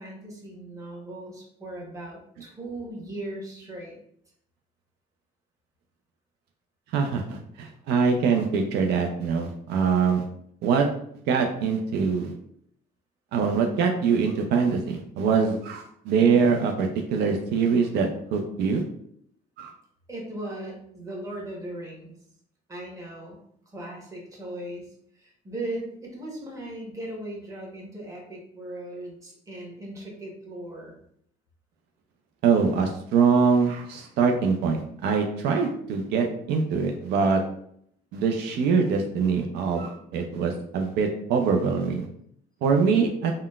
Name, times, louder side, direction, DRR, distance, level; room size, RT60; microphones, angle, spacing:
voice 1, 0.0-4.0 20.1-22.1 22.7-23.4 23.7-24.9 25.1-30.9, right 1 dB, 20° right, -3 dB, 1.1 m, -38 dB
voice 2, 6.9-10.2 10.6-10.9 11.3-12.3 13.3-18.8 19.6-19.7 32.4-37.4 38.1-42.1 42.6-43.3, right 5 dB, 80° right, 3 dB, 0.4 m, -23 dB
3.7 x 2.1 x 2.3 m, 0.68 s
cardioid pair, 110°, 17 cm